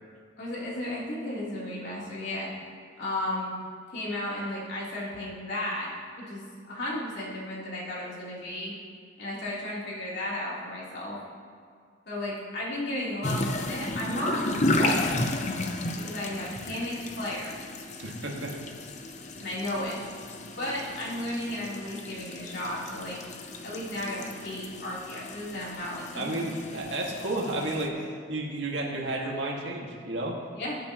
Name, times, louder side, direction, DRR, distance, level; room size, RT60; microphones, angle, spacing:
voice 1, 0.4-2.5 3.0-3.5 3.9-8.7 9.2-11.2 12.1-15.1 16.0-17.6 19.4-20.0 20.6-23.2 23.6-26.3 30.6-30.8, left 1 dB, 65° left, -7 dB, 3.7 m, -34 dB
sound 1, 13.2-27.9, left 2 dB, 35° left, 0.8 m, -33 dB
voice 2, 18.0-18.7 26.1-30.4, right 2 dB, 70° right, -1 dB, 2.2 m, -32 dB
21.5 x 9.3 x 3.1 m, 2.2 s
head